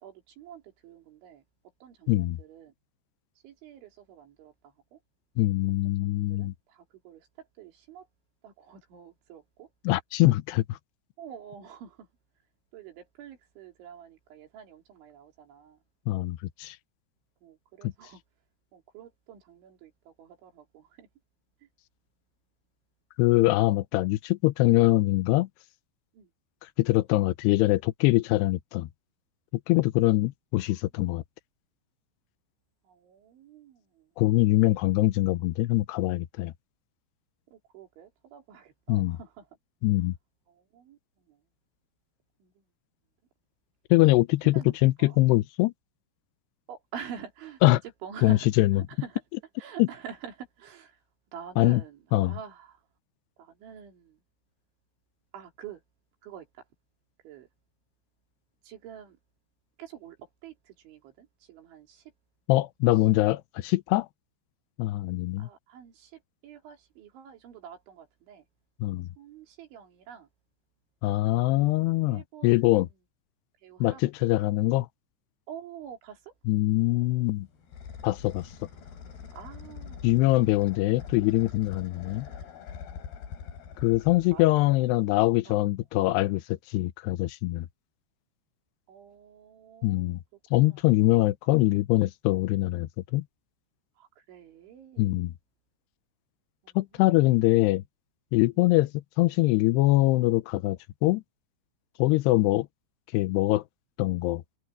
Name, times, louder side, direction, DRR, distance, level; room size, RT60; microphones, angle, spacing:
voice 1, 0.0-1.4 1.8-2.7 3.4-5.0 5.9-8.1 8.4-9.7 11.2-12.1 12.7-15.8 17.4-18.2 18.7-21.1 21.6-21.7 26.1-26.3 30.7-30.8 32.8-34.1 37.5-39.5 40.0-40.1 40.5-41.4 42.4-42.7 44.4-45.2 46.7-47.6 48.0-49.2 49.6-51.0 51.3-52.9 53.4-54.2 55.3-55.8 56.2-56.7 57.2-57.5 58.6-59.2 59.8-62.1 62.9-63.1 65.4-68.4 69.2-70.3 71.5-71.7 72.0-72.9 73.6-74.3 75.5-76.4 79.4-80.1 84.1-84.4 85.5-85.7 88.9-90.2 90.6-90.8 94.0-95.2 96.6-97.3, right 8 dB, 75° right, 5.6 m, -47 dB
voice 2, 2.1-2.4 5.4-6.5 9.9-10.8 16.1-16.8 17.8-17.9 23.2-25.5 26.8-28.9 29.7-31.2 34.2-36.5 38.9-39.2 39.8-40.1 43.9-45.7 47.6-47.8 48.2-48.8 49.8-49.9 51.6-51.8 52.1-52.4 62.5-64.1 64.8-65.5 68.8-69.1 71.0-72.9 73.8-74.9 76.5-77.5 78.0-78.5 80.0-82.3 83.8-87.7 89.8-90.2 90.5-93.2 95.0-95.3 96.8-97.8 98.3-101.2 102.0-102.7 103.1-103.6 104.0-104.4, left 18 dB, 85° left, 2.5 m, -23 dB
sound 1, 77.1-85.1, left 7 dB, 60° left, 5.2 m, -44 dB
omnidirectional pair, 5.5 m